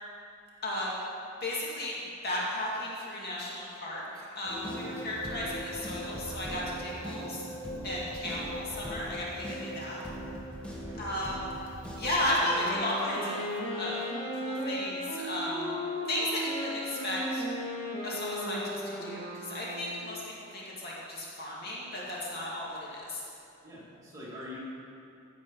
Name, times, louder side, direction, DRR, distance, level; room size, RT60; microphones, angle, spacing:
voice 1, 1.4-1.9 2.2-7.4 7.8-10.0 11.0-11.5 12.0-13.5 13.8-14.0 14.3-15.8 16.1-17.4 18.0-23.2, left 1 dB, 50° left, -5 dB, 2.2 m, -34 dB
sound 1, 4.4-12.2, equal, 5° left, 1.3 m, -39 dB
voice 2, 10.6-11.2 23.6-24.6, left 1 dB, 15° right, -8 dB, 2.7 m, -45 dB
Wind instrument woodwind instrument, 12.1-20.2, equal, 25° left, 2.5 m, -36 dB
15.5 x 5.2 x 5.5 m, 2.6 s
head